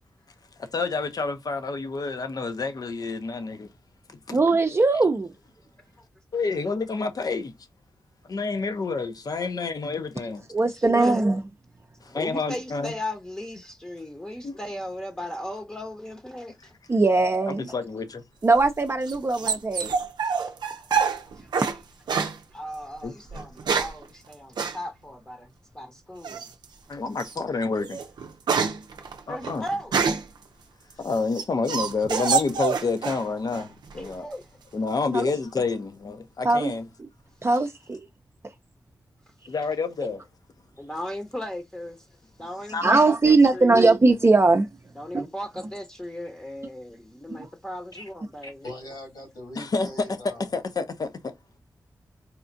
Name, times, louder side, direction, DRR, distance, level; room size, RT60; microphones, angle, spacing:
voice 1, 0.7-3.7 4.1-4.4 6.3-7.5 8.3-10.5 12.0-12.9 14.4-14.6 17.5-18.2 23.0-23.1 26.9-28.0 29.3-29.6 31.0-34.3 34.7-36.9 39.5-40.2 42.7-43.0 49.6-50.1 50.4-51.3, left 4 dB, 60° left, 0.7 m, -29 dB
voice 2, 4.3-5.3 10.5-11.4 16.9-17.7 18.4-19.9 35.1-35.2 36.4-36.7 37.4-38.0 42.8-44.7 45.1-45.3 47.3-47.4, right 3 dB, 35° right, 0.5 m, -20 dB
voice 3, 10.6-11.3 12.1-16.7 20.8-21.5 22.5-26.5 29.3-29.9 33.9-34.5 40.8-43.8 44.9-48.7, left 1 dB, 15° left, 0.8 m, -36 dB
sound 1, 18.5-21.8 22.1-22.4 23.3-24.0 24.6-24.8 26.2-26.6 27.2-27.3 27.8-30.4 30.9-33.2 33.5-34.1, right 5 dB, 85° right, 0.5 m, -26 dB
voice 4, 48.4-50.5, left 1 dB, 75° left, 2.4 m, -41 dB
4.3 x 2.4 x 2.5 m
cardioid pair, 50°, 7 cm